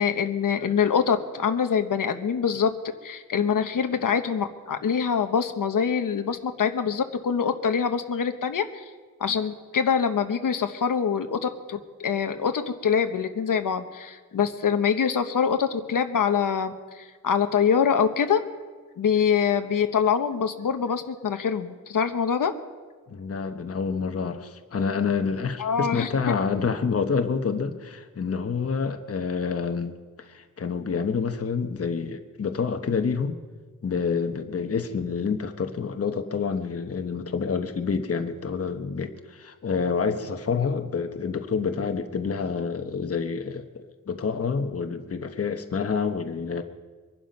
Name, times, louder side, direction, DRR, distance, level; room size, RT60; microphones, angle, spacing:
voice 1, 0.0-2.7 3.0-8.8 9.2-18.4 19.0-22.5 25.6-26.3, left 7 dB, 90° left, 7 dB, 1.0 m, -24 dB
voice 2, 23.1-33.4 33.8-46.6, left 5 dB, 45° left, 6 dB, 1.0 m, -28 dB
23.5 x 11.5 x 5.3 m, 1.4 s
wide cardioid pair, 150°, 31 cm